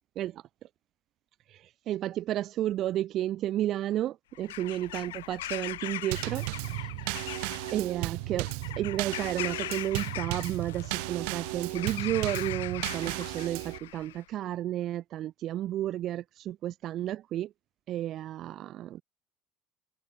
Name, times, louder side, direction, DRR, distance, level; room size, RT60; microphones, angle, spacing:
voice 1, 1.5-7.1 7.7-8.5 8.8-17.5 17.9-19.0, right 13 dB, 55° right, 1.3 m, -32 dB
Bird vocalization bird call bird song / Crow, 4.3-14.2, left 15 dB, 85° left, 5.2 m, -40 dB
Drum kit / Snare drum / Bass drum, 6.1-13.8, right 38 dB, 75° right, 4.1 m, -35 dB
hypercardioid pair, 75°, 0 cm